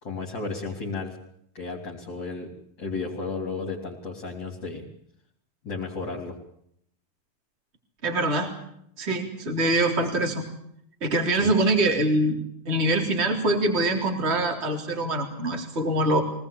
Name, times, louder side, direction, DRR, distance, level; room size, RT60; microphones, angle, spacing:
voice 1, 0.0-1.2 1.5-2.5 2.8-4.8 5.6-6.4 11.4-11.5, left 4 dB, 35° left, -1 dB, 4.5 m, -33 dB
voice 2, 8.0-8.5 9.0-10.4 11.0-12.4 12.7-16.2, right 1 dB, 20° right, 4 dB, 3.7 m, -24 dB
25.0 x 19.5 x 8.7 m, 0.71 s
omnidirectional pair, 3.5 m